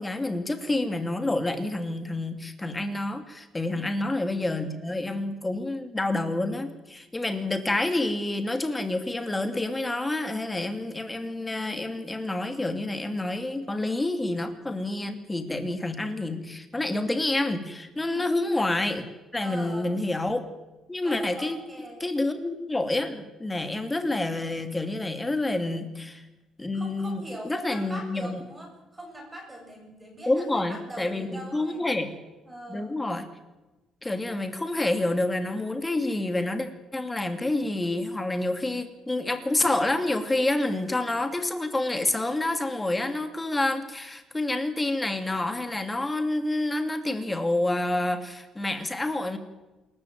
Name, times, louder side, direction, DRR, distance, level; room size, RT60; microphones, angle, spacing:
voice 1, 0.0-19.1 19.3-20.5 20.9-21.6 22.0-26.3 26.6-28.4 30.3-32.1 32.7-33.3 34.0-36.7 36.9-49.4, left 2 dB, 10° left, 8 dB, 2.7 m, -28 dB
voice 2, 3.6-3.9 18.0-18.3 19.4-20.0 21.0-22.0 26.7-32.0 32.4-32.9, right 1 dB, 10° right, 1 dB, 7.2 m, -42 dB
27.5 x 14.5 x 9.3 m, 1.1 s
cardioid pair, 145°, 0 cm